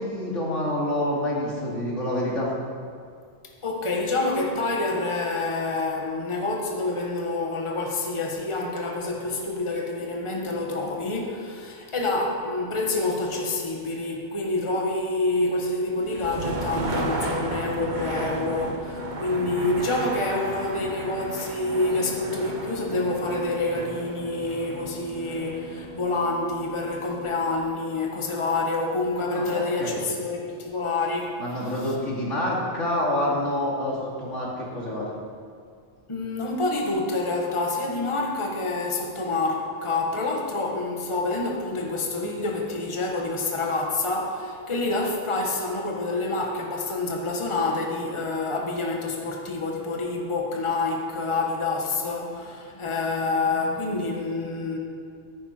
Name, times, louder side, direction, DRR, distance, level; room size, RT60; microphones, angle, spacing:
voice 1, 0.0-2.5 29.3-30.0 31.4-35.1, left 1 dB, 85° left, -5 dB, 3.0 m, -27 dB
voice 2, 3.6-31.9 36.1-54.8, left 2 dB, 25° left, 0 dB, 1.4 m, -27 dB
sound 1, 15.9-27.8, right 2 dB, 40° right, 1.3 m, -34 dB
15.0 x 10.0 x 4.4 m, 2.3 s
omnidirectional pair, 1.2 m